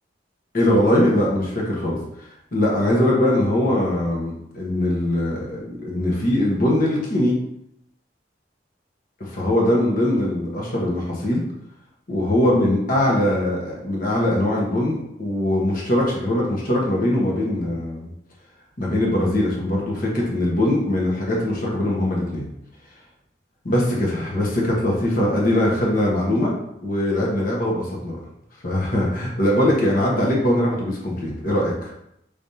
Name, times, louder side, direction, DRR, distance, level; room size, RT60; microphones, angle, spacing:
voice 1, 0.5-2.0 2.5-7.4 9.3-11.4 12.1-18.1 18.8-22.5 23.6-26.5 26.8-28.2 28.6-31.9, left 1 dB, 50° left, -3 dB, 1.1 m, -21 dB
5.0 x 3.4 x 2.7 m, 0.77 s
head